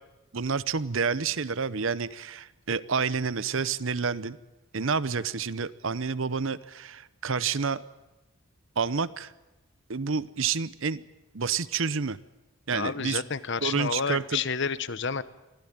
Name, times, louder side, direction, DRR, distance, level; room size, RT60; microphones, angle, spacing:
voice 1, 0.3-4.4 4.7-7.8 8.8-9.3 9.9-11.0 11.3-12.2 12.7-13.2 13.6-14.4, right 5 dB, 65° right, 17 dB, 0.8 m, -29 dB
voice 2, 12.7-15.2, left 5 dB, 55° left, 15 dB, 0.9 m, -30 dB
24.0 x 16.0 x 8.8 m, 1.0 s
head